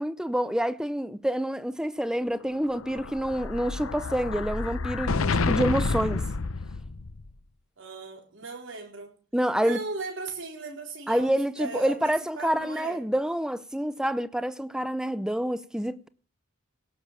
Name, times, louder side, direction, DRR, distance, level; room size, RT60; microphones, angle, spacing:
voice 1, 0.0-6.2 9.3-9.8 11.1-16.1, equal, 5° right, 0.5 m, -27 dB
Explosion, 2.6-7.3, left 3 dB, 85° left, 0.8 m, -29 dB
voice 2, 7.8-9.1 9.6-13.0, right 3 dB, 65° right, 4.2 m, -37 dB
17.5 x 7.0 x 6.8 m
head